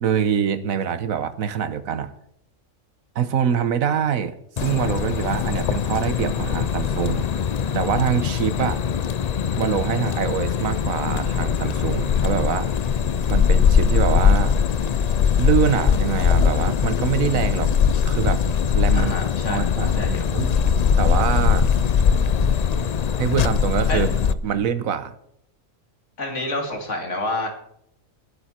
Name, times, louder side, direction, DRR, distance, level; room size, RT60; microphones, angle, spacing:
voice 1, 0.0-2.1 3.1-7.3 7.7-8.8 9.6-12.7 13.3-14.6 15.4-17.7 18.0-18.4 18.7-19.1 19.4-21.7 23.2-25.1, right 8 dB, 80° right, 13 dB, 1.3 m, -25 dB
sound 1, 4.6-24.3, left 7 dB, 90° left, 0.3 m, -21 dB
voice 2, 18.9-20.3 23.9-24.0 26.2-27.5, left 2 dB, 60° left, 2 dB, 2.9 m, -29 dB
19.5 x 9.3 x 4.3 m, 0.73 s
omnidirectional pair, 1.4 m